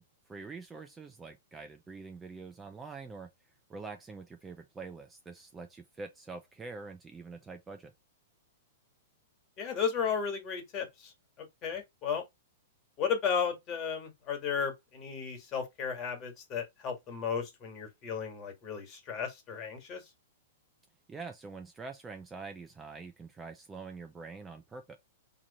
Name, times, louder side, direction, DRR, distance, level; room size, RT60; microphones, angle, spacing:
voice 1, 0.0-3.3 3.7-7.9 21.1-25.0, right 4 dB, 15° right, 0.6 m, -45 dB
voice 2, 9.6-11.1 11.6-12.2 13.0-20.1, left 7 dB, 30° left, 1.7 m, -34 dB
3.1 x 2.4 x 4.1 m
hypercardioid pair, 125°, 0 cm